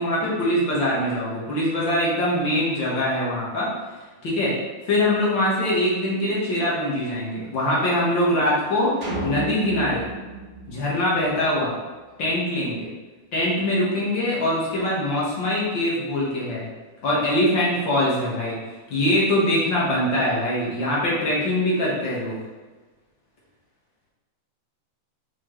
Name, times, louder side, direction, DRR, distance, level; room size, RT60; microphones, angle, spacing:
voice 1, 0.0-3.7 4.2-4.5 4.9-8.9 9.2-10.0 10.7-11.7 12.2-12.9 13.3-16.7 17.0-18.6 18.9-22.4, left 1 dB, 45° left, -6 dB, 1.8 m, -23 dB
sound 1, 9.0-11.5, right 2 dB, 55° right, 1.2 m, -32 dB
6.1 x 5.7 x 3.2 m, 1.3 s
omnidirectional pair, 3.7 m